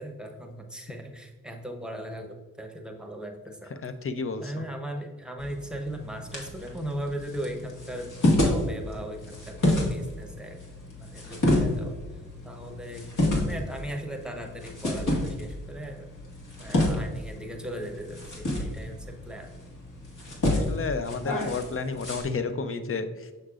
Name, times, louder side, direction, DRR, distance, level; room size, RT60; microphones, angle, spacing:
voice 1, 0.0-3.8 4.4-10.6 11.0-12.0 12.4-16.1 16.6-19.5, right 1 dB, ahead, 3 dB, 0.9 m, -38 dB
voice 2, 3.8-4.5 20.5-23.3, left 4 dB, 40° left, 9 dB, 0.6 m, -31 dB
sound 1, 5.4-22.2, left 1 dB, 60° left, 1.8 m, -30 dB
6.5 x 6.4 x 2.5 m, 1.3 s
cardioid pair, 65°, 35 cm